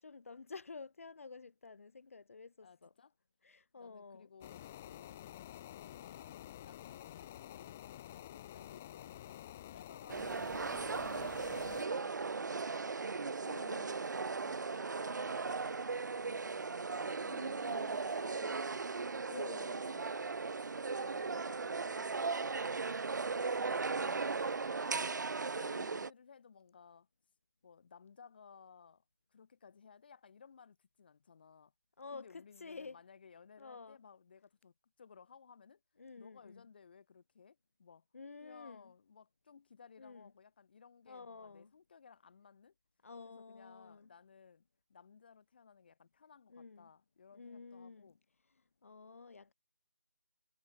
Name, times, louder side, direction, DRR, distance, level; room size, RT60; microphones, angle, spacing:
voice 1, 0.0-2.9 3.4-4.3 11.1-11.4 13.4-14.0 17.3-18.0 19.2-19.9 25.5-26.0 32.0-33.0 33.6-34.0 36.0-36.6 38.1-38.9 40.0-40.3 41.1-41.7 43.0-44.1 46.5-46.9 47.3-48.1 48.8-49.5, left 4 dB, 50° left, 1.4 m, -51 dB
voice 2, 2.6-3.1 3.8-5.3 5.8-7.8 8.1-10.4 11.3-13.4 14.2-19.0 19.5-20.3 20.9-22.3 23.3-25.1 25.9-27.1 27.6-29.0 29.3-31.7 32.1-35.8 36.2-38.0 38.4-42.7 43.2-48.2, left 6 dB, 35° left, 1.7 m, -60 dB
sound 1, 4.4-11.9, left 12 dB, 5° left, 0.3 m, -50 dB
sound 2, 10.1-26.1, right 4 dB, 75° right, 0.4 m, -37 dB
figure-of-eight pair, 170°, 10 cm